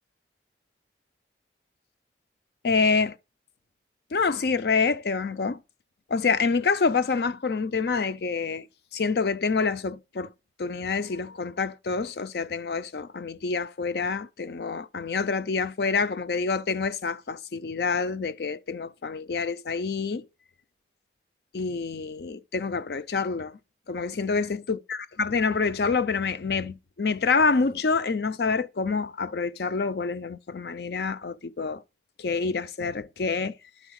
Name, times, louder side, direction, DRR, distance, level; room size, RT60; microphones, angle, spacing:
voice 1, 2.6-3.2 4.1-5.6 6.1-8.7 8.9-10.3 10.6-20.2 21.5-23.6 23.9-31.8 32.2-33.6, left 4 dB, 65° left, 0.5 m, -27 dB
11.0 x 3.9 x 6.4 m
head